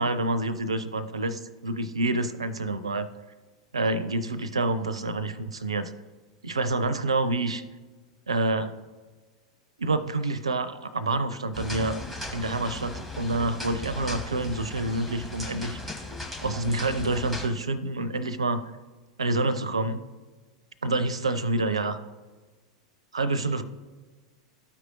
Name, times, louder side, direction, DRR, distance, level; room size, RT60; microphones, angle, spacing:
voice 1, 0.0-3.1 3.7-5.9 6.4-7.6 8.3-8.7 9.8-12.0 12.3-16.0 16.4-18.7 19.2-20.0 20.8-22.0 23.1-23.6, right 2 dB, 75° right, 14 dB, 0.5 m, -27 dB
sound 1, 11.5-17.5, left 2 dB, 5° left, 1.2 m, -37 dB
13.0 x 4.7 x 2.6 m, 1.4 s
figure-of-eight pair, 90°, 3 cm